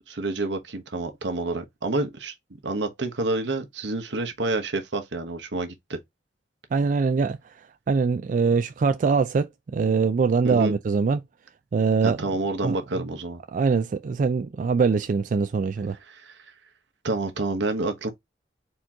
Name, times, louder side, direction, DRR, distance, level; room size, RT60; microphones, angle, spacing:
voice 1, 0.1-2.3 2.6-6.0 10.4-10.7 12.0-13.4 16.1-16.4 17.0-18.1, right 2 dB, 80° right, 1.1 m, -28 dB
voice 2, 6.7-7.4 7.9-11.2 11.7-12.2 12.6-12.8 13.5-16.0, right 5 dB, 45° right, 0.3 m, -23 dB
4.4 x 3.0 x 3.6 m
head